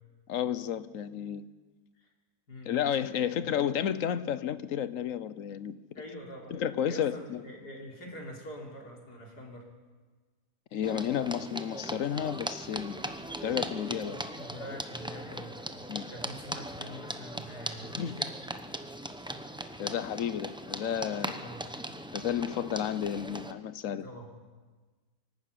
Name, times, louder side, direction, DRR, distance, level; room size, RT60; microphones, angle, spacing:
voice 1, 0.3-1.4 2.7-5.7 6.5-7.4 10.7-13.0 13.4-14.2 15.9-16.1 18.0-18.2 19.8-21.4 22.1-24.1, left 9 dB, 60° left, 15 dB, 1.1 m, -32 dB
voice 2, 3.1-3.5 6.0-6.5 6.9-9.7 14.0-18.4 21.4-21.7 24.0-24.3, equal, 85° left, 0 dB, 4.0 m, -45 dB
sound 1, 10.8-23.5, right 1 dB, 5° right, 0.5 m, -39 dB
26.0 x 12.0 x 8.5 m, 1.3 s
omnidirectional pair, 1.7 m